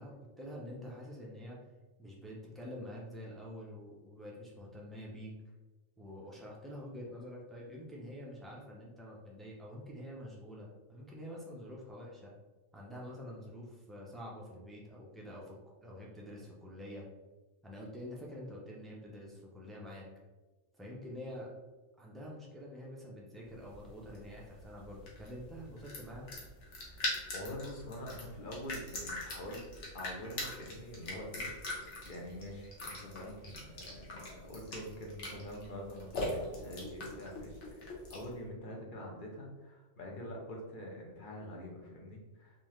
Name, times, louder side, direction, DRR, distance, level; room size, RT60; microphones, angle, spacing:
voice 1, 0.0-1.6 2.0-5.3 6.0-12.3 12.7-17.0 17.6-20.1 20.8-21.5 22.0-26.3, equal, ahead, -4 dB, 0.4 m, -47 dB
sound 1, 23.5-38.4, left 2 dB, 65° left, 1.2 m, -42 dB
voice 2, 26.9-29.6 29.9-42.7, left 1 dB, 45° left, -1 dB, 0.8 m, -45 dB
3.7 x 2.8 x 3.1 m, 1.2 s
omnidirectional pair, 1.3 m